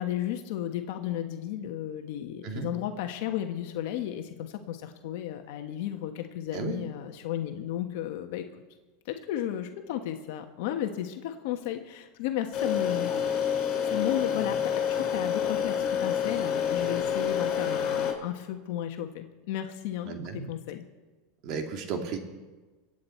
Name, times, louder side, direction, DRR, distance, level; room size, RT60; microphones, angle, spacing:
voice 1, 0.0-8.4 9.0-13.1 13.8-20.2 20.5-20.8, left 11 dB, 65° left, 5 dB, 1.2 m, -34 dB
sound 1, 12.5-18.1, left 8 dB, 45° left, 4.5 m, -28 dB
voice 2, 20.0-20.5 21.4-22.2, right 5 dB, 45° right, 4 dB, 2.2 m, -34 dB
24.0 x 8.9 x 4.4 m, 1.2 s
supercardioid pair, 140°, 0 cm